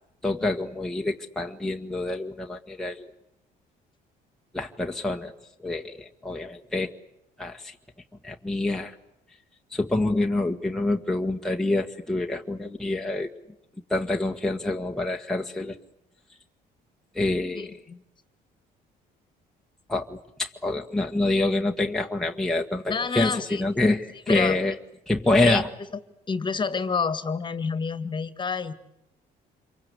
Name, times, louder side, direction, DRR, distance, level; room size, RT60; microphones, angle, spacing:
voice 1, 0.2-3.1 4.5-5.3 5.6-6.9 7.4-7.7 8.2-9.0 9.7-13.3 13.9-15.7 17.1-17.8 19.9-24.8 25.1-25.7, left 2 dB, 5° left, 1 dB, 1.6 m, -26 dB
voice 2, 17.5-18.0 22.9-23.7 24.3-24.6 25.4-25.6 26.3-28.7, left 5 dB, 25° left, 13 dB, 2.0 m, -28 dB
27.0 x 23.5 x 8.4 m, 0.83 s
cardioid pair, 110°, 17 cm